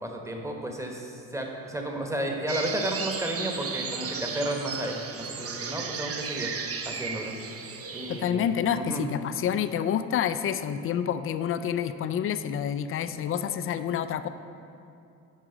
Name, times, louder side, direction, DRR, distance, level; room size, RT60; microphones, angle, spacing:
voice 1, 0.0-6.5 6.8-7.3 7.9-8.5 8.7-9.0, right 1 dB, 5° right, 2 dB, 1.1 m, -32 dB
sound 1, 2.5-8.2, right 5 dB, 35° right, 0.7 m, -35 dB
voice 2, 8.1-14.3, left 8 dB, 35° left, 11 dB, 0.4 m, -28 dB
10.5 x 4.7 x 3.9 m, 2.6 s
hypercardioid pair, 65°, 41 cm